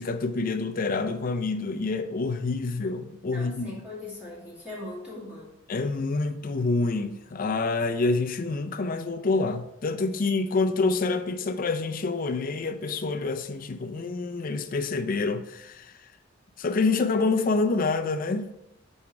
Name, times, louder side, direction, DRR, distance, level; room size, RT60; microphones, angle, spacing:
voice 1, 0.0-3.8 5.7-15.9 16.6-18.5, left 3 dB, 45° left, 0.4 m, -27 dB
voice 2, 3.3-5.5, left 2 dB, 5° right, 2.2 m, -40 dB
5.6 x 4.4 x 4.7 m
head